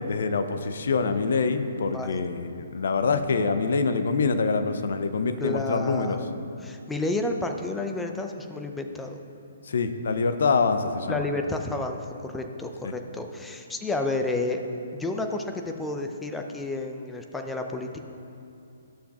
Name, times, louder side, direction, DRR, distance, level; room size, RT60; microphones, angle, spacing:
voice 1, 0.0-6.2 9.6-11.2 12.8-12.9, left 4 dB, 60° left, 9 dB, 0.6 m, -25 dB
voice 2, 1.9-2.2 5.4-6.3 6.6-9.2 11.1-12.0 12.2-14.6 14.9-18.0, left 2 dB, 5° left, 4 dB, 0.5 m, -31 dB
13.0 x 6.9 x 2.4 m, 2.6 s
figure-of-eight pair, 130°, 0 cm